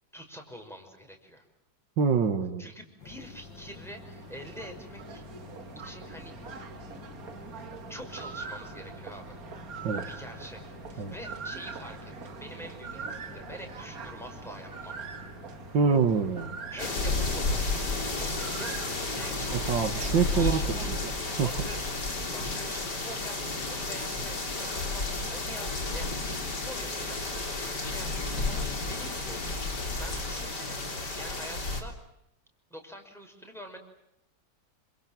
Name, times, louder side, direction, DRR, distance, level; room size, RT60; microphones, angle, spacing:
voice 1, 0.1-1.4 2.6-5.2 5.8-6.6 7.9-9.4 9.9-15.0 16.7-20.1 20.4-21.0 21.4-21.9 22.3-23.4 23.7-28.1 28.4-31.9 32.7-33.8, equal, ahead, 3 dB, 5.8 m, -46 dB
voice 2, 2.0-2.7 9.8-10.0 11.0-11.1 15.7-16.5 19.5-20.6 20.9-21.1 21.4-21.7, right 6 dB, 80° right, 7 dB, 2.5 m, -26 dB
sound 1, 3.0-19.3, left 4 dB, 85° left, 2.8 m, -48 dB
sound 2, 3.3-21.7, right 6 dB, 55° right, 1.8 m, -43 dB
sound 3, 16.8-31.8, left 3 dB, 65° left, 4.1 m, -32 dB
28.0 x 27.0 x 7.5 m, 0.81 s
omnidirectional pair, 2.0 m